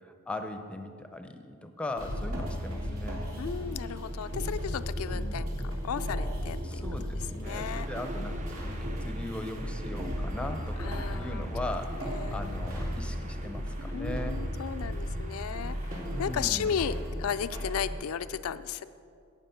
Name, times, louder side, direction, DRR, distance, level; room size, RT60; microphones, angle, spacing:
voice 1, 0.0-3.2 5.1-5.4 6.6-11.9 12.3-14.4 16.1-16.7, left 1 dB, 5° left, 7 dB, 0.6 m, -39 dB
sound 1, 2.0-17.9, equal, 80° right, 2.5 m, -35 dB
voice 2, 3.4-5.5 5.8-6.8 7.4-7.9 10.8-11.5 12.1-12.7 13.9-18.9, left 7 dB, 85° left, 13 dB, 0.4 m, -35 dB
sound 2, 7.4-16.9, right 2 dB, 35° right, 0.7 m, -47 dB
17.0 x 6.0 x 5.7 m, 2.4 s
head